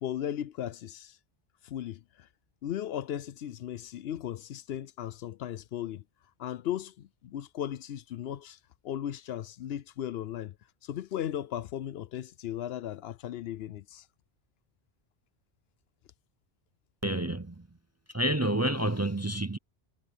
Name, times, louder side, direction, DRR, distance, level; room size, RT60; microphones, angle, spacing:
voice 1, 0.0-1.2 1.6-2.3 2.6-6.0 6.4-8.6 8.8-10.5 10.8-14.0, left 11 dB, 75° left, 0.8 m, -36 dB
voice 2, 17.0-17.7 18.1-19.6, right 1 dB, 20° right, 0.6 m, -29 dB
omnidirectional pair, 1.1 m